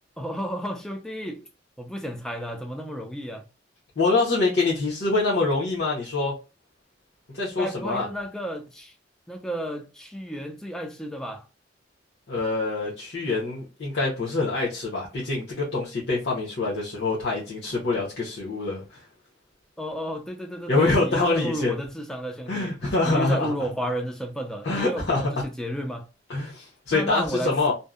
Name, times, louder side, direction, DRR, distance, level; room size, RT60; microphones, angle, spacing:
voice 1, 0.2-1.5 1.8-3.5 7.6-8.9 9.3-11.5 19.8-22.7 23.0-26.1 26.9-27.6, equal, 5° left, 0.3 m, -32 dB
voice 2, 4.0-6.3 7.3-8.1 12.3-18.8 20.7-21.7 22.5-23.5 24.6-25.3 26.3-27.7, left 3 dB, 65° left, 0.7 m, -25 dB
2.6 x 2.0 x 2.3 m
head